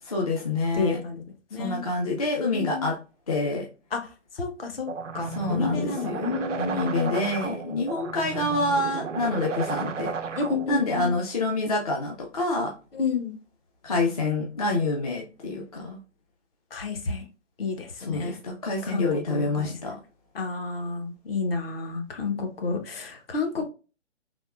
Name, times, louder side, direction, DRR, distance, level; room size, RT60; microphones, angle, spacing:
voice 1, 0.0-1.0 1.6-3.0 3.3-3.7 5.3-10.1 10.7-12.7 13.8-16.0 18.0-20.0, left 2 dB, 35° left, 0 dB, 0.4 m, -27 dB
voice 2, 0.7-1.2 1.5-1.9 2.5-2.8 3.9-4.0 4.4-4.9 5.1-7.1 10.4-11.2 12.9-13.4 16.7-17.2 17.6-18.3 18.9-19.9 20.3-23.7, left 4 dB, 50° left, 4 dB, 0.9 m, -30 dB
sound 1, 4.9-10.9, right 5 dB, 85° right, 0.5 m, -34 dB
3.5 x 2.8 x 2.3 m, 0.33 s
figure-of-eight pair, 135°, 36 cm